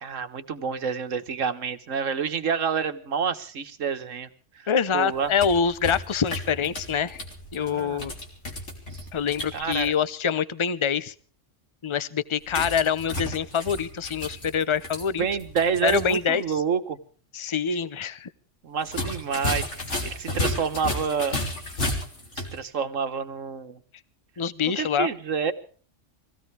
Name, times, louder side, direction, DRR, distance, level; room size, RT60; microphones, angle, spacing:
voice 1, 0.0-4.3 4.9-5.3 7.6-8.0 8.9-9.0 9.5-9.9 15.2-17.0 18.6-21.4 22.4-23.8 24.8-25.5, right 6 dB, 90° right, 9 dB, 1.6 m, -28 dB
voice 2, 4.7-7.2 7.5-8.1 9.1-11.1 11.8-15.2 15.8-16.4 17.3-18.3 24.4-25.1, left 7 dB, 30° left, 16 dB, 0.7 m, -25 dB
sound 1, 5.1-9.9 12.5-16.2 16.5-16.6 18.8-22.6, left 1 dB, 65° left, 3.7 m, -33 dB
24.5 x 16.5 x 3.4 m, 0.41 s
omnidirectional pair, 1.3 m